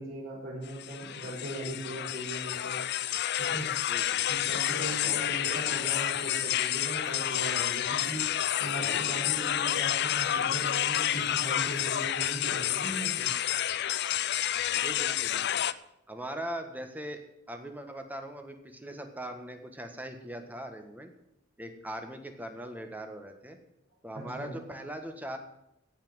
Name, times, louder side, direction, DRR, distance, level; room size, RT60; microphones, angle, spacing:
voice 1, 0.0-3.1 3.4-3.7 4.2-8.2 8.6-13.3 24.1-24.5, right 1 dB, 45° right, -9 dB, 6.0 m, -39 dB
sound 1, 0.7-15.7, left 11 dB, 55° left, 0.5 m, -29 dB
voice 2, 3.9-4.3 5.0-5.2 8.0-8.3 8.8-9.3 14.7-15.6 16.1-17.2 17.5-21.1 21.6-23.6 24.0-25.4, right 1 dB, 10° right, 5 dB, 1.5 m, -41 dB
16.5 x 5.8 x 9.6 m, 0.81 s
head